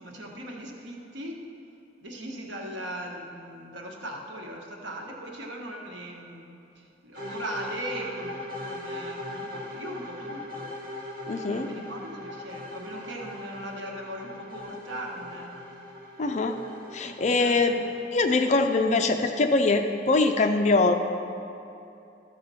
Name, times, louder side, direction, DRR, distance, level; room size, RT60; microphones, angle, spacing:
voice 1, 0.0-1.4 2.0-10.7 11.4-15.5 17.4-17.6, right 1 dB, 85° right, 0 dB, 1.3 m, -39 dB
sound 1, 7.1-19.2, left 1 dB, 50° right, 1.7 m, -40 dB
voice 2, 11.3-11.7 16.2-16.6 16.9-17.9 18.1-20.9, left 3 dB, 40° left, 5 dB, 0.4 m, -23 dB
13.0 x 6.7 x 4.2 m, 2.7 s
head